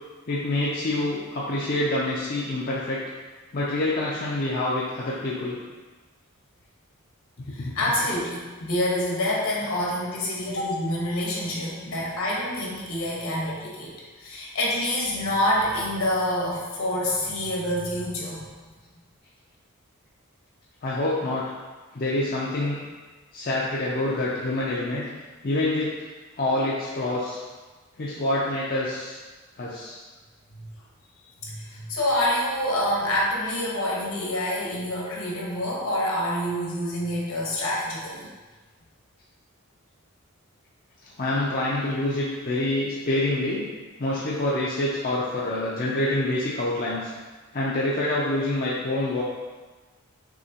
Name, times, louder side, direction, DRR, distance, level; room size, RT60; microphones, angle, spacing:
voice 1, 0.3-3.0 3.5-5.6 7.6-7.9 11.9-12.0 20.8-21.4 21.9-22.8 23.3-25.1 25.4-25.9 26.4-27.4 28.0-29.2 29.6-30.0 41.2-43.6 44.0-47.1 47.5-49.2, left 1 dB, 40° left, -6 dB, 0.5 m, -26 dB
voice 2, 7.5-13.9 14.2-18.4 30.5-30.7 31.4-38.3, left 1 dB, 70° left, -4 dB, 1.2 m, -27 dB
6.1 x 2.9 x 2.9 m, 1.3 s
head